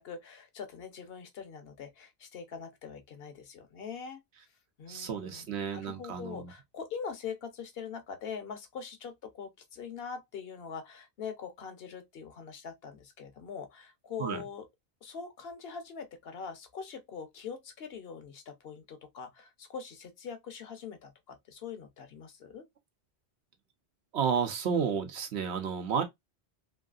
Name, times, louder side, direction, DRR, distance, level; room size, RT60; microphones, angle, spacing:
voice 1, 0.0-4.2 4.8-14.7 15.0-22.6, left 6 dB, 65° left, 0.9 m, -43 dB
voice 2, 4.9-6.5 14.2-14.4 24.1-26.0, right 7 dB, 90° right, 1.1 m, -31 dB
3.1 x 2.7 x 2.3 m
omnidirectional pair, 1.1 m